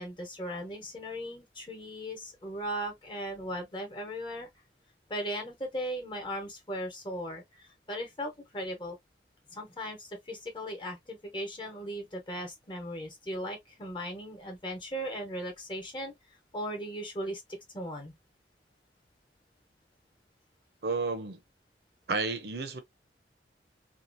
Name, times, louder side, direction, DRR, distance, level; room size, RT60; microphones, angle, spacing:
voice 1, 0.0-4.5 5.1-9.0 9.5-16.1 16.5-17.4 17.7-18.1, equal, 25° left, 1.1 m, -37 dB
voice 2, 20.8-21.4 22.1-22.8, right 3 dB, 65° right, 0.6 m, -31 dB
2.8 x 2.4 x 2.6 m
head